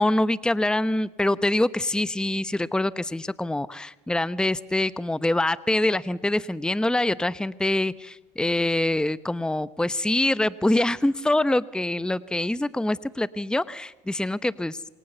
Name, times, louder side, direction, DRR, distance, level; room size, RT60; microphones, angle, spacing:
voice 1, 0.0-14.9, left 1 dB, 5° left, 16 dB, 0.9 m, -25 dB
28.0 x 25.0 x 6.8 m, 1.1 s
hypercardioid pair, 75°, 17 cm